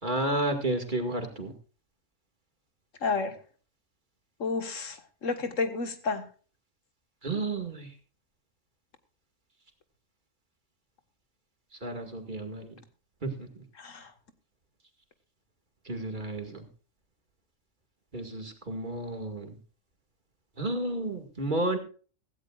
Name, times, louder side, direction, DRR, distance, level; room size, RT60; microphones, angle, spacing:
voice 1, 0.0-1.5 7.2-8.0 11.7-12.8 13.2-13.6 15.8-16.7 18.1-19.6 20.6-21.8, right 2 dB, 40° right, 5 dB, 2.2 m, -32 dB
voice 2, 3.0-3.4 4.4-6.3 13.8-14.1, left 4 dB, 80° left, 8 dB, 1.9 m, -31 dB
16.5 x 15.5 x 2.4 m, 0.39 s
omnidirectional pair, 1.3 m